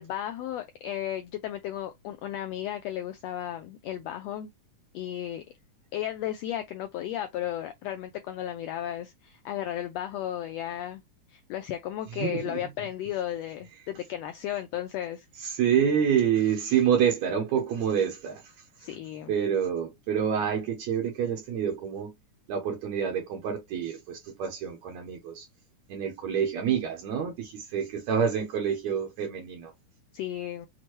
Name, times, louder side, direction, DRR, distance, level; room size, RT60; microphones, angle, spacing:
voice 1, 0.0-4.5 4.9-5.4 5.9-11.0 11.3-15.3 18.8-19.3 30.1-30.7, left 11 dB, 85° left, 1.4 m, -34 dB
voice 2, 12.2-12.6 15.4-18.5 19.3-22.1 22.5-25.5 25.9-29.7, right 8 dB, 70° right, 1.9 m, -27 dB
6.2 x 2.2 x 3.0 m
omnidirectional pair, 3.6 m